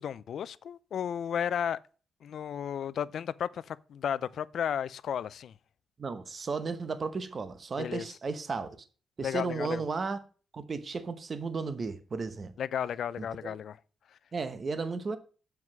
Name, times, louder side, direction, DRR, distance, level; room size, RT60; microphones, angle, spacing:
voice 1, 0.0-1.8 2.2-5.5 7.8-8.0 9.2-9.8 12.6-13.8, left 8 dB, 70° left, 0.4 m, -33 dB
voice 2, 6.0-8.8 9.2-10.2 10.5-12.5 13.2-13.5 14.3-15.2, right 4 dB, 40° right, 0.9 m, -34 dB
7.6 x 4.7 x 6.0 m
cardioid pair, 120°, 0 cm